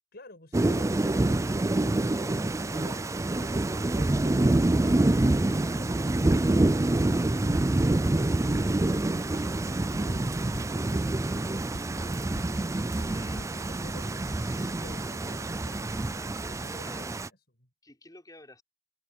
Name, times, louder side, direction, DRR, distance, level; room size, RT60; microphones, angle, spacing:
voice 1, 0.1-5.1 5.6-7.6 8.0-16.0 16.5-17.3 17.5-17.7, left 2 dB, 60° left, 5.3 m, -51 dB
Thunder / Rain, 0.5-17.3, right 2 dB, 15° right, 0.4 m, -26 dB
voice 2, 6.9-7.4 13.0-13.6 14.2-15.2 16.2-17.1 17.8-18.6, left 1 dB, 20° left, 6.1 m, -51 dB
sound 1, 9.3-11.4 11.7-13.7, equal, 75° left, 6.5 m, -45 dB
head